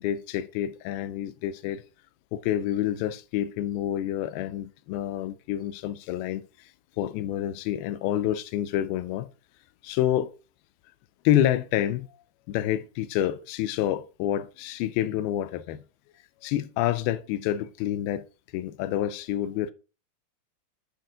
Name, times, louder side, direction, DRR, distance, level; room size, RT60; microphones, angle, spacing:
voice 1, 0.0-1.8 2.3-6.5 7.0-9.3 9.8-10.3 11.3-12.1 12.5-15.8 16.4-18.2 18.5-19.7, left 12 dB, 85° left, 2.5 m, -28 dB
8.9 x 5.1 x 3.8 m
omnidirectional pair, 4.3 m